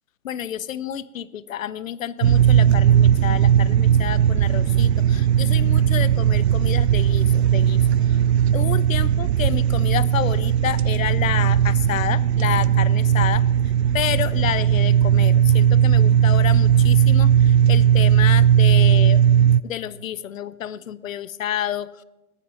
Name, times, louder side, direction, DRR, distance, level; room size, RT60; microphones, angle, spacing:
voice 1, 0.2-8.2 8.5-19.2 19.6-22.0, left 10 dB, 65° left, 18 dB, 0.8 m, -29 dB
sound 1, 2.2-19.6, right 9 dB, 50° right, 0.4 m, -17 dB
26.5 x 10.0 x 3.8 m, 1.1 s
hypercardioid pair, 135°, 44 cm